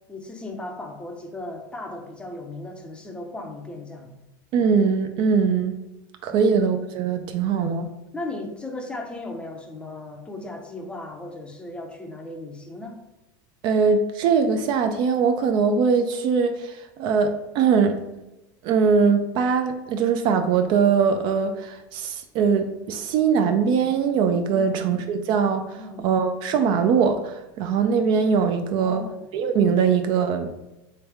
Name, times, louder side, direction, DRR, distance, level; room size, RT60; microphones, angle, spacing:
voice 1, 0.1-4.1 6.3-6.5 7.5-7.9 8.1-13.0 24.5-24.7 25.8-26.1 28.7-29.3, left 2 dB, 10° left, 2 dB, 0.6 m, -36 dB
voice 2, 4.5-5.7 6.2-7.9 13.6-18.0 18.6-25.8 26.0-29.0 29.3-30.5, right 6 dB, 45° right, 7 dB, 0.4 m, -21 dB
3.3 x 3.1 x 4.6 m, 0.99 s
supercardioid pair, 140°, 11 cm